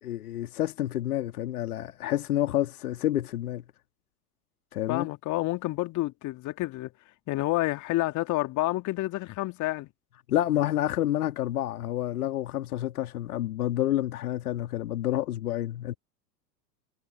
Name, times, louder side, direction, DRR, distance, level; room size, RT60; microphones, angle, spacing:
voice 1, 0.0-3.6 4.7-5.1 10.3-16.0, left 13 dB, 65° left, 2.4 m, -29 dB
voice 2, 4.9-6.9 7.3-9.9, left 18 dB, 40° left, 2.4 m, -29 dB
figure-of-eight pair, 90°, 47 cm